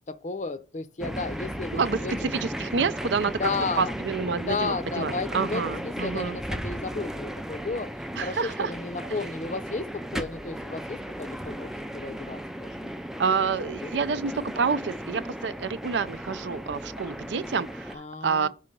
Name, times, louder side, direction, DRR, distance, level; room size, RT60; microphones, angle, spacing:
voice 1, 0.1-2.1 3.3-3.9 4.4-7.9 8.2-13.0 13.8-13.9 17.9-18.5, left 4 dB, 40° left, 0.6 m, -33 dB
sound 1, 1.0-18.0, equal, 5° right, 0.3 m, -35 dB
voice 2, 1.7-3.5 3.8-6.4 8.1-8.7 9.0-9.1 10.1-10.3 13.2-18.5, right 5 dB, 75° right, 0.5 m, -28 dB
5.6 x 3.9 x 5.1 m
head